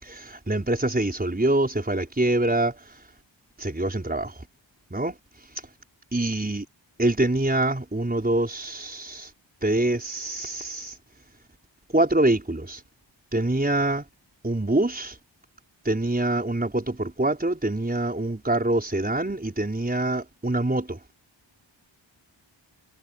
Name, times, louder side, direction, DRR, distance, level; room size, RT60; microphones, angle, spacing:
voice 1, 0.0-2.8 3.6-4.3 4.9-5.1 6.1-6.6 7.0-9.3 9.6-10.9 11.9-12.8 13.3-14.0 14.4-15.2 15.9-21.0, right 2 dB, 20° right, 5.3 m, -25 dB
wide cardioid pair, 100°, 46 cm